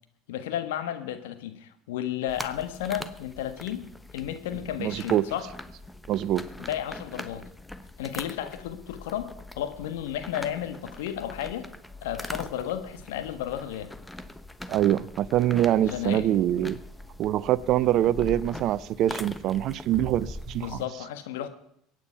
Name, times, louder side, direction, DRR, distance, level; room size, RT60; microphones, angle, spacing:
voice 1, 0.3-3.9 4.1-5.5 6.7-7.4 8.0-11.7 12.0-13.9 15.8-16.3 20.6-21.5, left 11 dB, 75° left, 1.3 m, -33 dB
sound 1, 2.3-20.8, left 2 dB, 10° left, 1.0 m, -42 dB
voice 2, 4.8-5.2 6.1-6.4 14.7-16.8 17.2-20.8, right 12 dB, 55° right, 0.7 m, -24 dB
22.5 x 9.3 x 5.6 m
hypercardioid pair, 75°, 0 cm